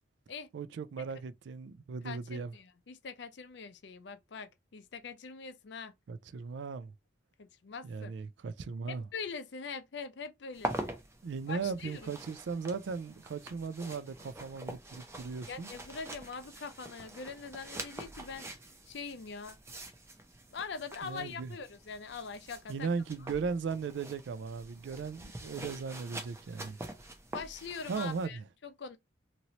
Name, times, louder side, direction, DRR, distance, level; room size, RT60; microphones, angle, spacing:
voice 1, 0.5-2.5 6.1-6.9 7.8-9.0 11.2-15.7 21.0-21.5 22.7-26.8 27.9-28.4, right 5 dB, 65° right, 0.3 m, -37 dB
voice 2, 2.0-5.9 7.4-8.1 8.9-10.9 11.5-12.1 15.5-18.5 18.9-19.6 20.5-22.9 27.3-29.0, left 5 dB, 65° left, 0.5 m, -43 dB
sound 1, 10.5-28.3, right 1 dB, 15° right, 0.5 m, -45 dB
2.9 x 2.7 x 2.8 m
head